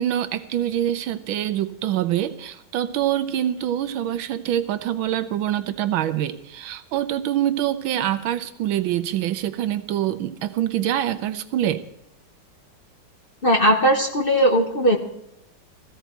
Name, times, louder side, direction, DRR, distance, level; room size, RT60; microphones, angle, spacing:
voice 1, 0.0-11.8, right 11 dB, 80° right, 12 dB, 1.5 m, -25 dB
voice 2, 13.4-15.0, equal, 35° left, 3 dB, 1.0 m, -18 dB
16.0 x 14.0 x 4.5 m, 0.78 s
omnidirectional pair, 2.2 m